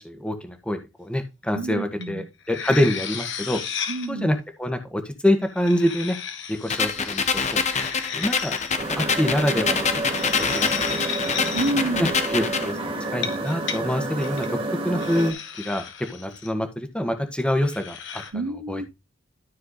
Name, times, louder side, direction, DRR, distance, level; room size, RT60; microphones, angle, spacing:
voice 1, 0.0-6.2 6.6-7.6 8.1-8.5 9.0-9.9 10.4-11.0 12.0-14.6 14.8-15.8 16.1-18.2 18.7-18.8, left 1 dB, 5° left, 1.5 m, -26 dB
voice 2, 1.5-2.3 3.9-4.4 11.5-12.1 18.3-18.9, right 2 dB, 80° right, 0.8 m, -28 dB
sound 1, 2.0-2.1 2.4-4.1 5.4-8.7 9.8-11.7 13.1-13.8 14.2-14.5 15.0-16.5 17.5-18.3, left 7 dB, 65° left, 1.6 m, -34 dB
sound 2, 6.7-12.7, left 5 dB, 35° left, 1.1 m, -26 dB
sound 3, 8.8-15.3, right 2 dB, 30° right, 2.3 m, -29 dB
13.0 x 4.5 x 4.0 m
head